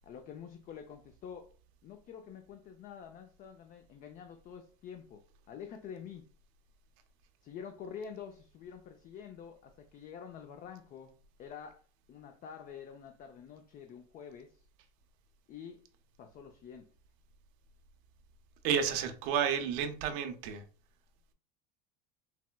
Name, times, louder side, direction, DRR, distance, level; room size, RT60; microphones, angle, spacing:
voice 1, 0.0-1.5 1.8-6.3 7.4-11.1 11.4-11.8 12.1-14.7 15.5-15.8 16.2-16.9, left 7 dB, 45° left, 0.4 m, -47 dB
voice 2, 18.6-20.6, right 8 dB, 75° right, 0.6 m, -31 dB
4.1 x 2.1 x 2.2 m
supercardioid pair, 100°, 20 cm